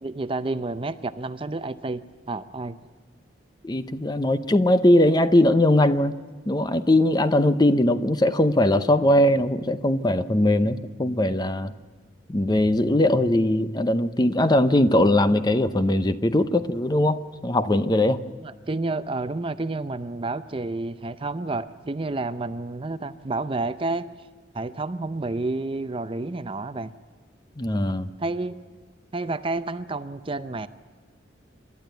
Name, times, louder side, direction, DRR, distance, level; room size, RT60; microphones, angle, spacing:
voice 1, 0.0-2.0 2.3-2.8 18.4-24.1 24.5-26.9 28.2-28.6 29.1-30.7, right 2 dB, 30° right, 12 dB, 0.6 m, -30 dB
voice 2, 3.6-6.1 6.5-11.7 12.3-18.2 27.6-28.1, left 1 dB, 20° left, 11 dB, 0.7 m, -20 dB
27.5 x 12.5 x 9.3 m, 1.4 s
head